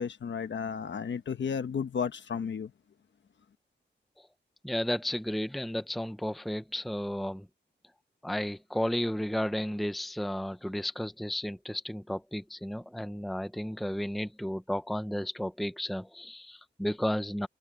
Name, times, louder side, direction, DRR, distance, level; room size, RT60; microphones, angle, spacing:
voice 1, 0.0-2.7, left 6 dB, 75° left, 1.3 m, -33 dB
voice 2, 4.6-7.5 8.2-17.5, equal, ahead, 0.8 m, -33 dB
wide cardioid pair, 110°, 19 cm